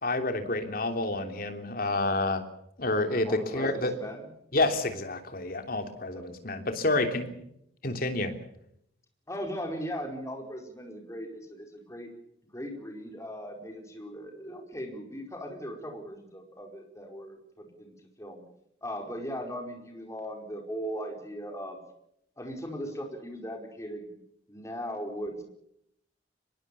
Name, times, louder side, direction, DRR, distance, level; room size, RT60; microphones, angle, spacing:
voice 1, 0.0-2.4 2.8-3.9 4.5-7.3 7.8-8.3, left 2 dB, 50° left, 6 dB, 3.3 m, -29 dB
voice 2, 3.2-4.3 6.0-6.3 9.3-12.1 12.5-18.4 18.8-21.8 22.4-24.1 24.5-25.4, equal, 15° left, 3 dB, 4.9 m, -38 dB
24.5 x 21.5 x 7.0 m, 0.74 s
head